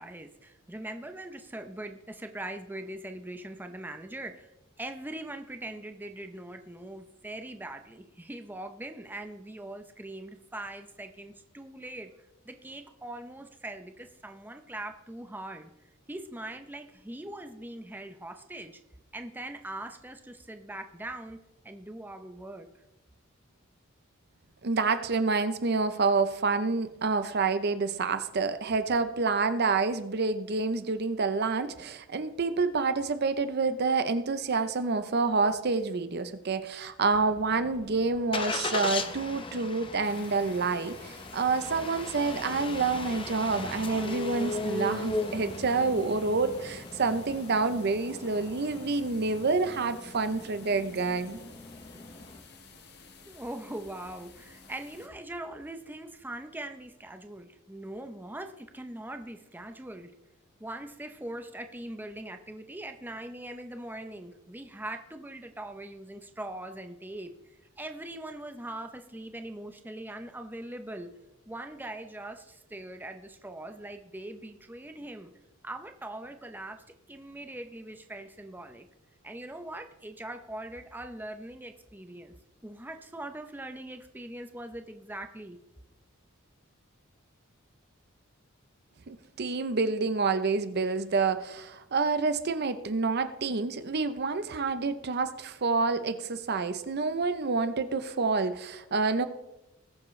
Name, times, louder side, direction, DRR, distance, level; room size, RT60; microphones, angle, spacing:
voice 1, 0.0-4.5 4.8-12.1 12.4-15.7 16.1-18.8 19.1-21.4 21.6-22.7 53.3-60.1 60.6-71.1 71.5-75.3 75.6-78.9 79.2-82.3 82.6-85.6, right 1 dB, 10° right, 6 dB, 0.7 m, -41 dB
voice 2, 24.6-51.4 89.1-99.2, right 4 dB, 50° right, 11 dB, 0.7 m, -28 dB
Engine starting, 37.1-52.4, left 2 dB, 25° left, 0.8 m, -38 dB
sound 1, 40.0-55.1, left 5 dB, 50° left, 1.4 m, -52 dB
19.5 x 7.2 x 3.2 m, 0.92 s
head